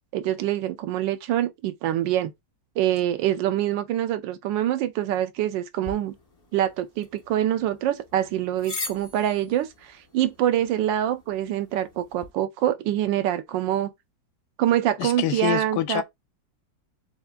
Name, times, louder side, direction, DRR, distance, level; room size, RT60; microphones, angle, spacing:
voice 1, 0.1-2.3 2.8-6.1 6.5-13.9 14.6-16.0, right 12 dB, 90° right, 1.3 m, -25 dB
sound 1, 5.8-12.3, left 3 dB, 30° left, 0.7 m, -42 dB
voice 2, 15.0-16.0, left 13 dB, 75° left, 1.2 m, -26 dB
6.7 x 2.5 x 2.2 m
omnidirectional pair, 1.9 m